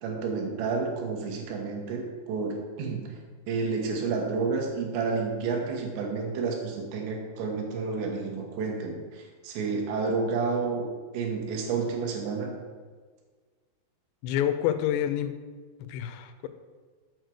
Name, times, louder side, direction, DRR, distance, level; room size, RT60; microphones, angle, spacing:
voice 1, 0.0-3.2 3.5-10.9 11.1-12.5, right 4 dB, 80° right, 1 dB, 3.4 m, -30 dB
voice 2, 14.2-15.3 15.8-16.5, left 10 dB, 85° left, 9 dB, 2.7 m, -28 dB
8.0 x 4.5 x 6.2 m, 1.5 s
omnidirectional pair, 5.1 m